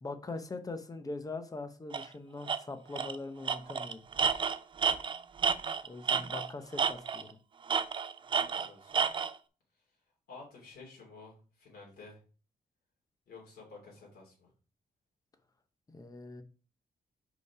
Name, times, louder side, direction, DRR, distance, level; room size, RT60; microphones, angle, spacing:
voice 1, 0.0-4.0 5.8-7.3 15.9-16.4, left 3 dB, 20° left, 8 dB, 0.8 m, -42 dB
Tools, 1.9-2.1 2.5-2.6 3.0-3.2 3.5-6.5 6.8-7.3 7.7-9.3, right 6 dB, 30° right, 0.4 m, -30 dB
voice 2, 8.4-9.0 10.3-12.2 13.3-14.5, left 3 dB, 80° left, -3 dB, 3.0 m, -52 dB
5.0 x 5.0 x 4.7 m, 0.37 s
wide cardioid pair, 165°, 16 cm